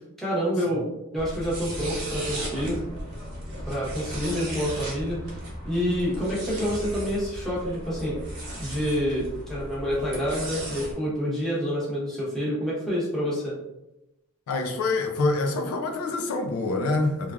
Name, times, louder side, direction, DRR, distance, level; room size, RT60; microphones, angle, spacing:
voice 1, 0.2-0.8 1.1-2.8 3.6-5.4 5.6-8.2 8.6-13.6, equal, ahead, -7 dB, 0.8 m, -28 dB
sound 1, 1.2-10.9, equal, 55° right, 0.9 m, -36 dB
voice 2, 14.5-17.3, left 2 dB, 80° left, 5 dB, 0.4 m, -26 dB
3.0 x 2.4 x 2.3 m, 0.90 s
head